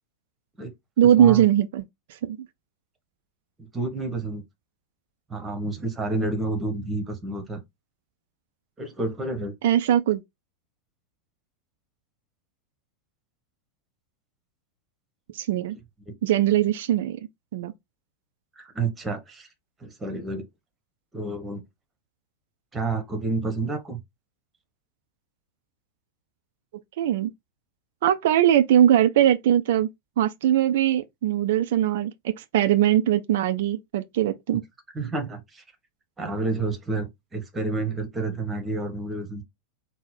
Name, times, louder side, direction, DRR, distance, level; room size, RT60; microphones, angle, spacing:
voice 1, 1.0-1.8 2.2-2.4 9.6-10.2 15.3-15.8 16.2-17.2 17.5-17.7 27.0-27.3 28.0-29.9 30.2-34.6, right 11 dB, 55° right, 0.4 m, -21 dB
voice 2, 3.6-4.4 5.3-7.6 8.8-9.5 18.6-19.5 19.8-20.5 21.1-21.6 22.7-24.0 34.9-35.6 36.2-39.4, right 3 dB, 15° right, 1.1 m, -29 dB
4.0 x 2.0 x 3.9 m
figure-of-eight pair, 90°, 0 cm